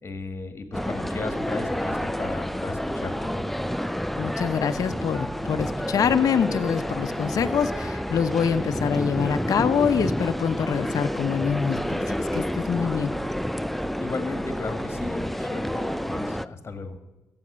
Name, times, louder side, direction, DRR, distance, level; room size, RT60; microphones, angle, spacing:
voice 1, 0.0-3.5 14.0-17.0, left 3 dB, 35° left, 8 dB, 1.8 m, -35 dB
sound 1, 0.7-16.4, equal, ahead, 0.5 m, -29 dB
voice 2, 4.2-13.1, left 7 dB, 60° left, 8 dB, 0.7 m, -25 dB
15.5 x 7.8 x 6.3 m, 1.1 s
cardioid pair, 70°, 7 cm